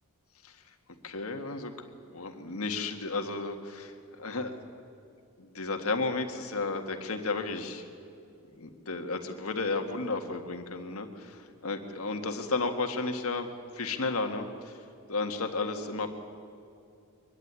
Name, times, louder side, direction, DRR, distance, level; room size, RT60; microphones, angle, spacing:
voice 1, 1.0-4.5 5.4-7.8 8.6-14.8 15.1-16.1, left 3 dB, 70° left, 5 dB, 1.7 m, -33 dB
23.5 x 11.5 x 9.6 m, 2.5 s
head